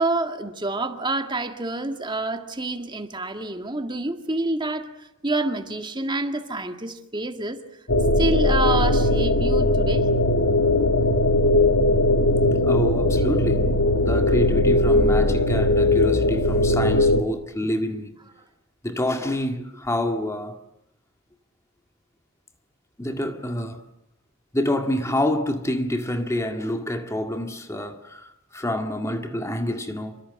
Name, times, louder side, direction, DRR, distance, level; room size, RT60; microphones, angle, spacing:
voice 1, 0.0-7.6 8.2-10.1, right 2 dB, 20° right, 1.9 m, -27 dB
sound 1, 7.9-17.2, left 2 dB, 80° left, 2.5 m, -19 dB
voice 2, 12.6-18.1 18.8-20.6 23.0-23.8 24.5-30.2, left 1 dB, 15° left, 1.9 m, -27 dB
28.0 x 25.5 x 7.7 m
head